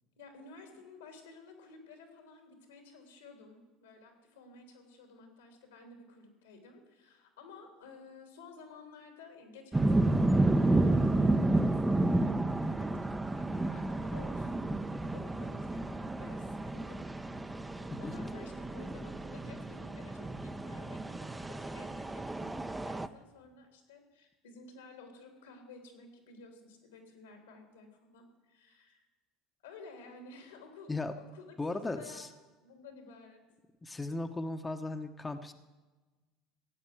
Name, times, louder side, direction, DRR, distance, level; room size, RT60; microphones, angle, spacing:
voice 1, 0.2-11.7 11.9-17.0 17.8-29.0 29.6-32.2 32.6-33.4, left 3 dB, 90° left, 3 dB, 3.3 m, -53 dB
sound 1, 9.7-23.1, right 2 dB, 15° right, 0.8 m, -31 dB
voice 2, 31.6-32.3 33.8-35.5, left 2 dB, 15° left, 6 dB, 1.0 m, -36 dB
16.0 x 9.0 x 7.6 m, 1.2 s
hypercardioid pair, 80°, 0 cm